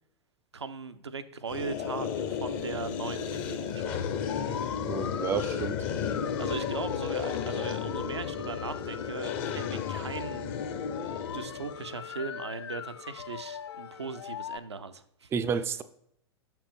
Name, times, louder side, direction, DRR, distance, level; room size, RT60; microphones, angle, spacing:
voice 1, 0.5-4.1 6.4-10.5 11.3-15.3, right 5 dB, 85° right, 0.5 m, -39 dB
sound 1, 1.5-11.9, left 7 dB, 45° left, 0.8 m, -33 dB
sound 2, 4.3-14.6, left 8 dB, 75° left, 0.4 m, -41 dB
voice 2, 4.9-5.8 15.3-15.8, right 6 dB, 20° right, 0.4 m, -30 dB
6.5 x 6.0 x 3.5 m
figure-of-eight pair, 95°, 14 cm